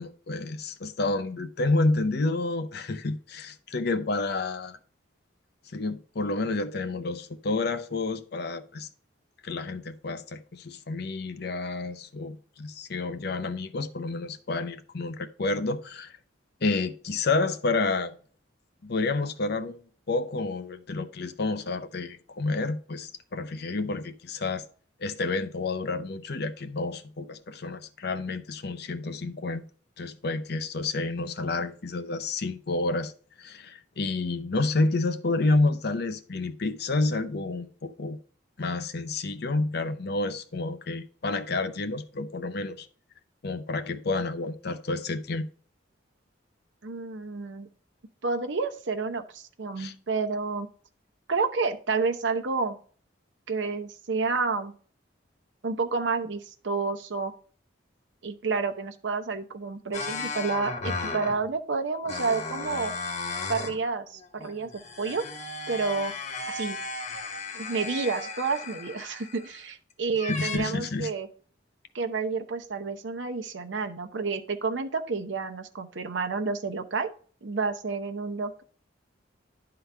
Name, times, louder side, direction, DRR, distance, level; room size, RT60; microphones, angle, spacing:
voice 1, 0.0-4.8 5.7-8.9 9.4-16.2 16.6-18.1 18.8-19.7 20.1-24.6 25.0-29.7 30.0-33.1 33.4-38.2 38.6-42.9 43.4-45.5 49.8-49.9 70.3-71.1, left 3 dB, 60° left, 0.7 m, -29 dB
voice 2, 46.8-47.7 48.2-50.7 51.3-52.8 53.5-54.7 55.6-57.3 58.2-62.9 63.5-64.7 65.0-65.2 65.7-66.1 66.5-66.8 67.5-71.3 71.9-77.1 77.4-78.6, right 4 dB, 75° right, 0.8 m, -30 dB
sound 1, 59.9-61.5 62.0-63.8 64.2-69.7 70.2-70.6, left 3 dB, 40° left, 1.0 m, -35 dB
11.0 x 3.9 x 3.4 m
head